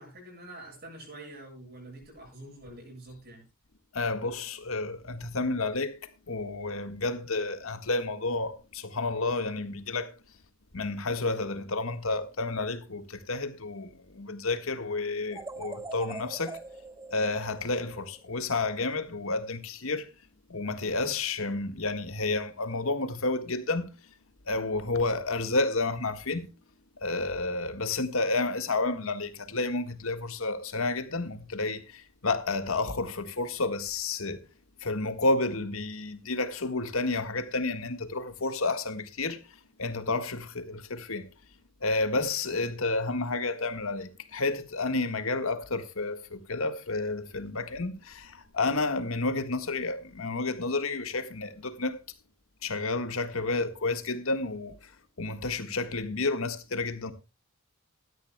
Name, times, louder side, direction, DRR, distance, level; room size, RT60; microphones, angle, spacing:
voice 1, 0.0-3.4, right 1 dB, 50° right, 7.6 m, -46 dB
voice 2, 3.9-10.1 10.7-16.6 17.1-20.1 20.5-23.9 24.5-26.5 27.0-34.4 34.8-39.4 39.8-41.3 41.8-52.0 52.6-54.9 55.2-57.1, left 3 dB, 70° left, 1.6 m, -30 dB
sound 1, 15.3-18.5, right 3 dB, 15° right, 0.6 m, -43 dB
17.0 x 13.0 x 2.3 m
head